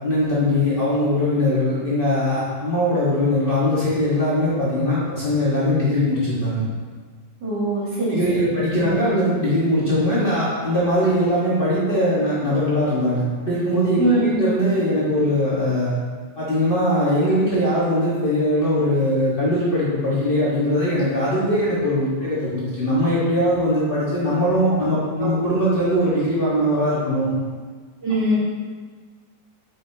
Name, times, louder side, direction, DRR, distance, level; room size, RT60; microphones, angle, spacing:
voice 1, 0.0-6.6 8.1-15.9 16.3-27.3, equal, 90° left, -10 dB, 0.4 m, -21 dB
voice 2, 7.4-8.2 8.5-8.9 14.0-14.5 25.2-25.3 28.0-28.4, right 1 dB, 40° right, -13 dB, 1.9 m, -22 dB
9.9 x 5.7 x 2.9 m, 1.5 s
omnidirectional pair, 4.0 m